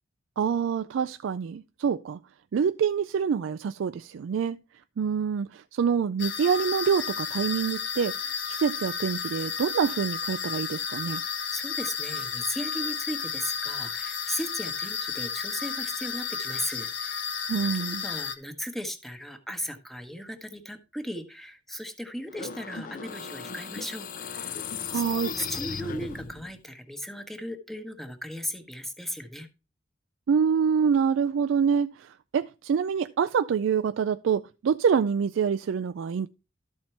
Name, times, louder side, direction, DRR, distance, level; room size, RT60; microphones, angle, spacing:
voice 1, 0.4-2.2 2.5-4.6 5.0-8.1 8.5-11.2 17.5-18.0 24.9-25.3 30.3-36.3, right 6 dB, 90° right, 0.3 m, -26 dB
sound 1, 6.2-18.4, left 6 dB, 75° left, 1.4 m, -32 dB
voice 2, 11.5-17.2 17.6-24.6 24.9-25.0 25.4-29.5, equal, ahead, 1.0 m, -36 dB
sound 2, 22.3-26.6, left 5 dB, 45° left, 0.6 m, -36 dB
12.5 x 4.4 x 4.4 m
head